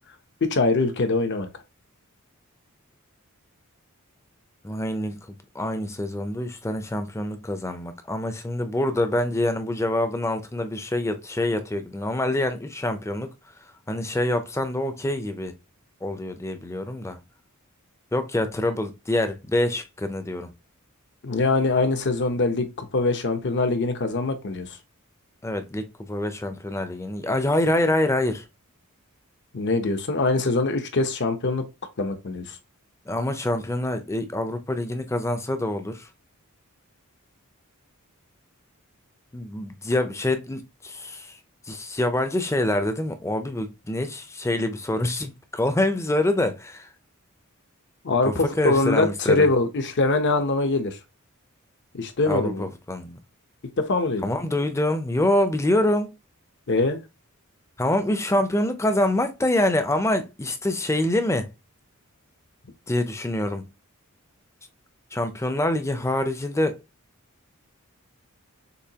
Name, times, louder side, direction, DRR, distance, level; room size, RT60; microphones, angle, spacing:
voice 1, 0.4-1.5 21.2-24.8 29.5-31.7 32.0-32.6 48.0-51.0 51.9-52.7 53.8-54.3 56.7-57.0, left 3 dB, 55° left, 0.8 m, -23 dB
voice 2, 4.6-5.3 5.5-13.3 13.9-15.5 16.0-17.2 18.1-20.5 25.4-28.4 33.1-36.1 39.3-41.4 41.7-46.9 48.2-49.5 52.3-53.2 54.2-56.1 57.8-61.5 62.9-63.6 65.1-66.8, left 1 dB, 15° left, 0.6 m, -25 dB
6.8 x 2.7 x 2.8 m
head